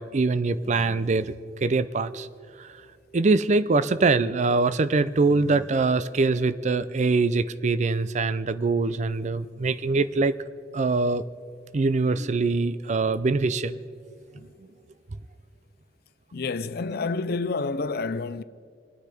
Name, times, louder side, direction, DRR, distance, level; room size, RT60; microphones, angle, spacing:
voice 1, 0.0-1.3 1.6-2.3 2.6-2.8 3.1-10.4 10.7-11.2 11.7-13.8, right 3 dB, 45° right, 0.5 m, -23 dB
voice 2, 16.3-18.4, left 3 dB, 60° left, 0.5 m, -28 dB
27.5 x 9.4 x 5.0 m
head